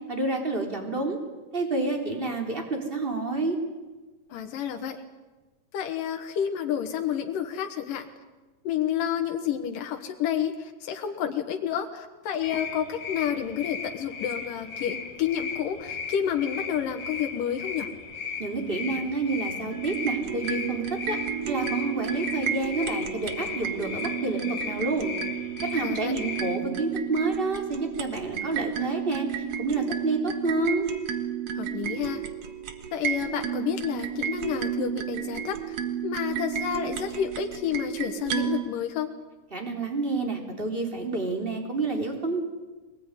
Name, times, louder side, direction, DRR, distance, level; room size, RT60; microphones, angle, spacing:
voice 1, 0.1-1.2 1.5-3.6 18.4-21.2 21.5-25.1 25.6-30.9 39.5-42.4, right 3 dB, 15° right, 2 dB, 3.8 m, -29 dB
voice 2, 4.3-5.0 5.7-8.1 8.6-17.9 25.8-26.1 31.5-32.2 32.9-35.8 36.0-39.1, left 9 dB, 85° left, 4 dB, 3.0 m, -30 dB
sound 1, 12.4-26.6, left 6 dB, 50° left, 2.9 m, -36 dB
sound 2, 19.7-38.6, right 9 dB, 55° right, 2.5 m, -32 dB
23.0 x 20.0 x 9.8 m, 1.2 s
omnidirectional pair, 3.7 m